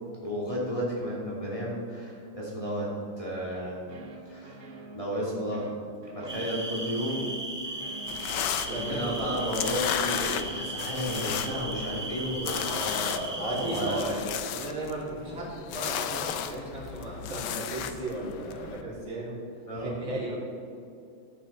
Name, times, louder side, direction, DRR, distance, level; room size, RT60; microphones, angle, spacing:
voice 1, 0.2-2.9 3.2-3.8 4.2-4.6 4.9-5.6 6.1-7.2 8.6-12.8 13.4-14.0 19.7-20.0, equal, 15° left, -5 dB, 2.5 m, -32 dB
sound 1, 3.5-12.9, right 3 dB, 50° right, 1.0 m, -47 dB
sound 2, 6.3-14.0, right 1 dB, 15° right, 1.1 m, -37 dB
sound 3, 8.1-18.8, left 9 dB, 80° left, 1.4 m, -34 dB
voice 2, 8.7-9.5 12.7-19.4 19.8-20.3, right 1 dB, 85° right, -7 dB, 4.3 m, -35 dB
15.0 x 9.1 x 4.3 m, 2.5 s
omnidirectional pair, 2.2 m